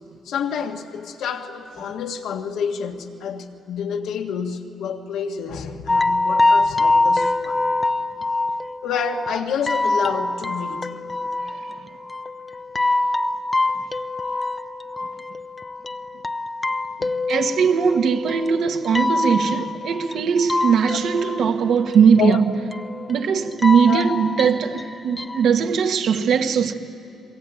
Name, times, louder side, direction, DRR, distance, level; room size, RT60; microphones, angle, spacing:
voice 1, 0.3-7.6 8.8-10.9 17.0-17.2 20.9-21.0 22.2-22.4 23.9-24.0 26.1-26.3, left 7 dB, 80° left, 1.8 m, -28 dB
sound 1, 5.9-25.5, left 2 dB, 20° left, 0.7 m, -25 dB
voice 2, 17.3-22.5 23.1-26.7, right 6 dB, 70° right, 1.7 m, -19 dB
29.5 x 21.5 x 9.3 m
cardioid pair, 105°, 0 cm